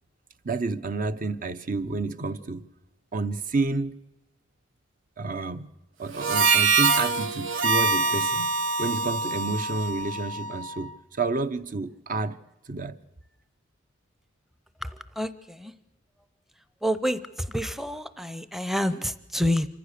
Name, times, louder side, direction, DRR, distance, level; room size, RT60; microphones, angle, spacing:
voice 1, 0.4-2.7 3.1-4.0 5.2-5.7 6.0-8.5 8.8-12.4 12.7-13.0, right 3 dB, 45° right, 0.7 m, -30 dB
Harmonica, 6.1-10.8, right 4 dB, 75° right, 1.1 m, -24 dB
voice 2, 16.8-17.2 17.5-19.7, equal, ahead, 0.7 m, -27 dB
26.5 x 15.0 x 6.6 m
head